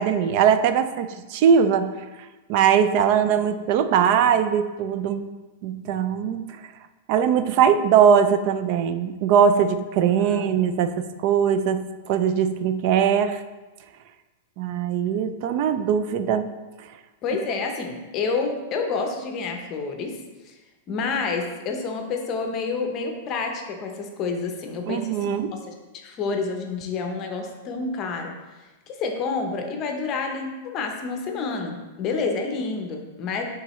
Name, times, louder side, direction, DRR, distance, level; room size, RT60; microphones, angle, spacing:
voice 1, 0.0-1.9 2.5-5.3 5.6-6.6 7.1-13.4 14.6-16.5 24.9-25.5, right 7 dB, 45° right, 10 dB, 0.4 m, -21 dB
voice 2, 10.2-10.5 17.2-20.6 20.9-28.3 28.9-33.4, left 4 dB, 30° left, 3 dB, 0.7 m, -29 dB
8.6 x 3.6 x 3.1 m, 1.2 s
supercardioid pair, 160°, 0 cm